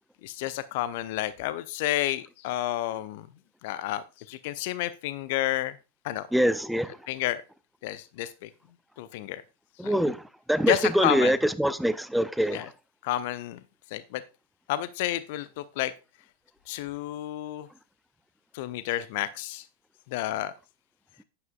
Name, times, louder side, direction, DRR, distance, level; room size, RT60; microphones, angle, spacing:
voice 1, 0.2-3.3 3.6-5.8 6.0-6.3 7.1-7.4 7.8-8.5 9.0-9.4 9.8-9.9 10.7-11.3 12.5-12.7 13.0-13.6 13.9-14.2 14.7-15.9 16.7-17.7 18.5-19.6 20.1-20.5, left 14 dB, 50° left, 0.6 m, -30 dB
voice 2, 6.3-7.0 9.8-10.2 10.5-12.7, equal, ahead, 0.5 m, -24 dB
10.5 x 10.0 x 2.3 m
figure-of-eight pair, 90°, 0 cm